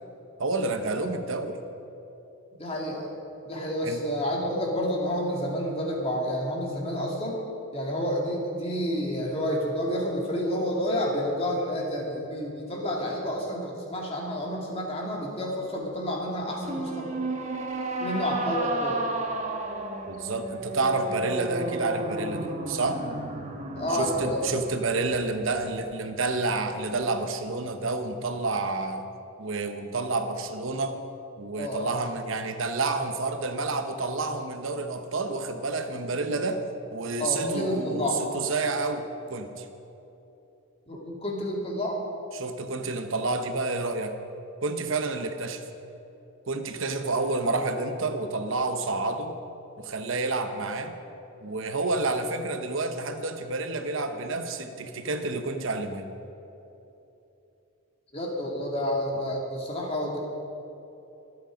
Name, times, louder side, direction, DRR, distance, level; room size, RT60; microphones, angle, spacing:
voice 1, 0.4-1.6 3.8-4.0 20.1-23.0 23.9-29.1 29.4-31.0 31.4-36.6 36.9-38.1 38.3-39.7 42.3-44.1 44.6-45.7 46.5-49.3 49.8-50.9 51.4-56.1, right 3 dB, 60° right, 7 dB, 1.0 m, -29 dB
voice 2, 2.5-3.1 3.5-7.4 7.7-17.1 18.0-19.1 23.7-24.4 31.6-31.9 37.2-38.2 40.9-42.0 58.1-60.2, equal, 25° left, -1 dB, 2.4 m, -29 dB
sound 1, 16.6-26.0, right 2 dB, 35° right, 1.3 m, -33 dB
24.5 x 8.3 x 5.2 m, 2.9 s
head